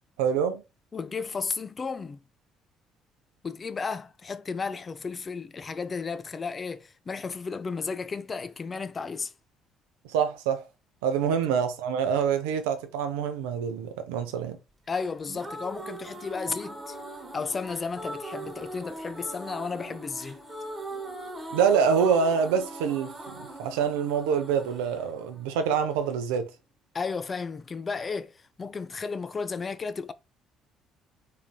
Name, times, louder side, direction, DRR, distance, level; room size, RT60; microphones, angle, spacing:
voice 1, 0.2-0.6 10.1-10.6 11.0-14.6 21.5-26.4, right 7 dB, 70° right, 0.5 m, -26 dB
voice 2, 0.9-2.2 3.4-9.3 11.3-11.4 14.9-17.0 17.3-20.4 26.9-30.1, left 5 dB, 30° left, 0.3 m, -33 dB
sound 1, 15.0-26.1, right 1 dB, 15° right, 1.2 m, -40 dB
3.8 x 3.2 x 2.3 m
figure-of-eight pair, 50°, 0 cm